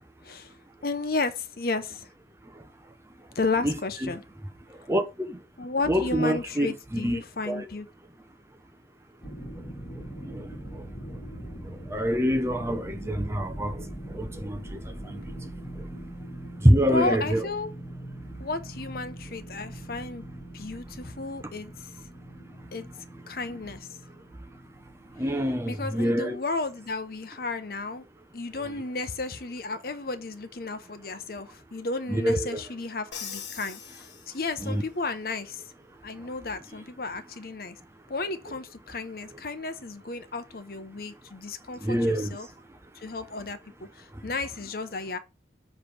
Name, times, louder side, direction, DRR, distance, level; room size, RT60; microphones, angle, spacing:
voice 1, 0.2-0.6 0.8-2.1 3.3-4.2 5.6-7.9 16.9-17.7 18.4-20.3 20.5-21.9 22.7-22.9 23.3-23.9 25.7-28.0 28.3-35.6 36.0-37.8 38.1-42.5 42.9-45.2, left 3 dB, 55° left, 0.8 m, -33 dB
voice 2, 4.9-5.4 5.9-7.2 7.5-7.7 10.3-10.5 11.9-13.8 14.1-14.8 15.1-15.2 16.6-17.5 25.2-26.4 32.1-32.6 34.6-34.8 41.8-42.4, equal, 15° right, 0.7 m, -25 dB
sound 1, 9.2-26.3, right 1 dB, 25° left, 1.7 m, -42 dB
Crash cymbal, 33.1-34.8, left 7 dB, 80° left, 1.5 m, -41 dB
7.1 x 3.3 x 6.0 m
head